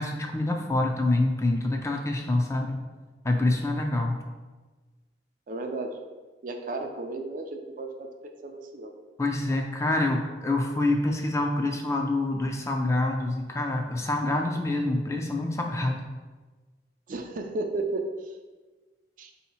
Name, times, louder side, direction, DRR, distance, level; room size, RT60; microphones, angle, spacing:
voice 1, 0.0-2.8 3.2-4.2 9.2-16.1, left 2 dB, 15° left, 2 dB, 0.4 m, -26 dB
voice 2, 5.5-5.9 6.4-8.1 8.4-8.9 17.1-18.0 19.2-19.3, right 3 dB, 45° right, 4 dB, 0.4 m, -33 dB
4.3 x 2.8 x 4.2 m, 1.3 s
head